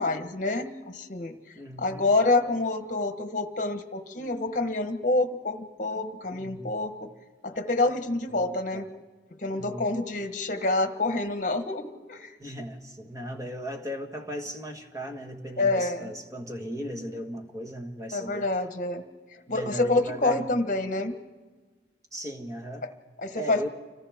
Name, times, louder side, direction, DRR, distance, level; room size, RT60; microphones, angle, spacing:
voice 1, 0.0-1.4 1.8-7.1 7.4-8.9 9.4-12.3 15.6-16.1 18.1-19.0 19.5-21.2 22.8-22.9 23.2-23.6, left 2 dB, 45° left, 1.2 m, -27 dB
voice 2, 1.5-2.2 6.3-6.8 8.3-8.8 9.5-10.0 12.4-18.5 19.5-20.5 22.1-22.9 23.3-23.7, equal, 20° right, 1.6 m, -37 dB
30.0 x 25.0 x 3.6 m
head